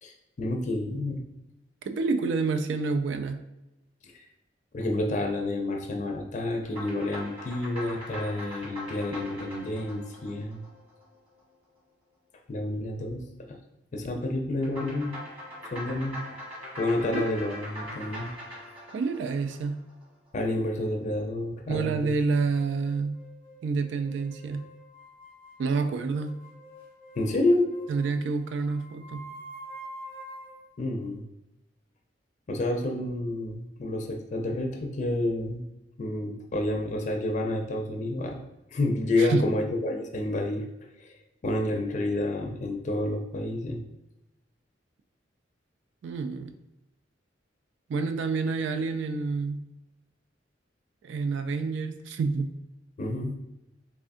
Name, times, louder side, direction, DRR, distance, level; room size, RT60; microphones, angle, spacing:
voice 1, 0.0-1.2 4.2-4.3 4.7-10.6 12.5-13.6 13.9-15.2 15.7-16.2 16.8-18.3 20.3-22.2 27.2-27.7 30.8-31.2 32.5-35.7 36.0-38.4 38.7-40.7 41.0-41.2 41.4-43.8 53.0-53.3, left 1 dB, 40° left, 3 dB, 0.4 m, -29 dB
voice 2, 1.8-3.4 17.0-17.3 18.9-19.8 21.7-23.2 23.6-24.7 25.6-26.4 27.9-29.3 39.2-39.5 46.0-46.5 47.9-49.6 51.0-52.5, right 4 dB, 80° right, 9 dB, 0.3 m, -28 dB
sound 1, 6.6-11.3 14.6-20.0, left 1 dB, 30° right, 1.4 m, -41 dB
sound 2, 22.5-30.7, right 1 dB, 50° right, 1.0 m, -47 dB
3.5 x 3.2 x 2.5 m, 0.94 s
head